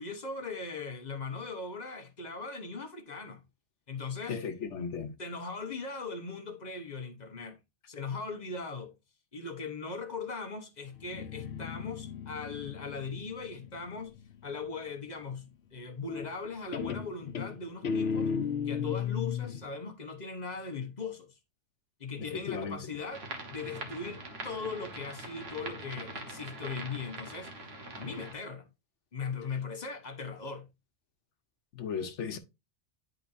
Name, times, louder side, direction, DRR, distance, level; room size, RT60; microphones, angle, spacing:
voice 1, 0.0-3.4 3.9-4.4 5.2-7.6 7.9-8.9 9.3-14.1 14.4-18.3 18.6-21.4 22.0-23.2 23.5-27.5 27.9-28.7 29.1-30.7, left 4 dB, 40° left, 1.0 m, -39 dB
voice 2, 4.3-5.1 22.2-22.8 31.7-32.4, left 6 dB, 90° left, 1.2 m, -36 dB
Guitar, 11.0-14.6 16.1-16.5 16.7-19.7, left 6 dB, 65° left, 1.1 m, -35 dB
sound 1, 23.1-28.3, right 2 dB, 65° right, 1.3 m, -43 dB
10.0 x 3.9 x 2.6 m
omnidirectional pair, 1.2 m